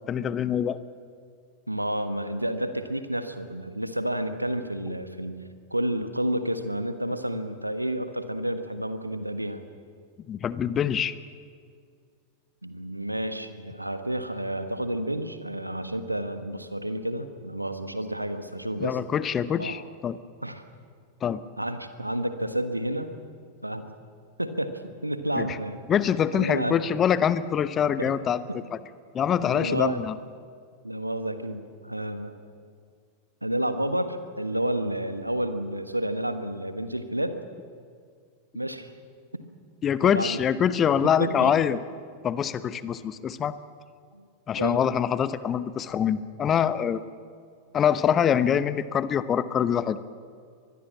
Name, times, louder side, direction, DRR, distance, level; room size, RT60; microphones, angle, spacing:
voice 1, 0.1-0.8 10.3-11.1 18.8-20.2 21.2-21.4 25.4-25.6 25.9-28.4 28.7-28.8 29.1-30.1 39.8-41.8 42.2-43.6 44.5-47.0 47.7-50.0, left 8 dB, 25° left, 15 dB, 0.9 m, -24 dB
voice 2, 1.7-5.4 5.7-9.6 12.6-19.0 19.6-19.8 20.4-20.6 21.6-23.1 23.6-23.8 24.4-25.8 26.3-26.8 28.0-28.1 28.5-28.6 29.5-30.0 30.8-32.4 33.4-37.4 38.5-38.9 39.3-39.4 40.0-40.4 41.0-41.5 44.1-44.3 44.5-44.8, right 1 dB, 85° right, 9 dB, 1.4 m, -30 dB
24.0 x 20.5 x 7.3 m, 2.2 s
figure-of-eight pair, 90°, 0 cm